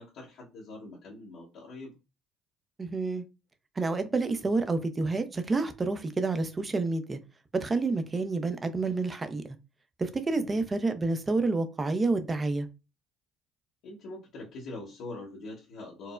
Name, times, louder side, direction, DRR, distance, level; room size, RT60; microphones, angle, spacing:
voice 1, 0.0-2.0 10.3-10.6 13.8-16.1, left 2 dB, 70° left, 1.1 m, -43 dB
voice 2, 2.8-3.2 3.8-7.2 7.5-9.4 10.0-12.7, right 3 dB, 25° right, 0.6 m, -29 dB
4.5 x 2.0 x 2.5 m
supercardioid pair, 90°, 0 cm